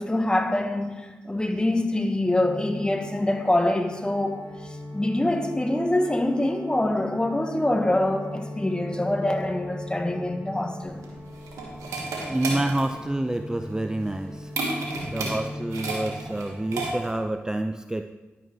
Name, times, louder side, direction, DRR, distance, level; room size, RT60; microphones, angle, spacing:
voice 1, 0.0-11.0, left 1 dB, 15° left, 5 dB, 1.3 m, -25 dB
sound 1, 2.2-16.9, left 1 dB, 60° right, 2.0 m, -40 dB
sound 2, 10.8-17.3, right 3 dB, 85° right, 1.5 m, -33 dB
voice 2, 12.2-18.0, right 1 dB, 10° right, 8 dB, 0.4 m, -28 dB
11.0 x 8.6 x 3.1 m, 1.2 s
supercardioid pair, 40°, 5 cm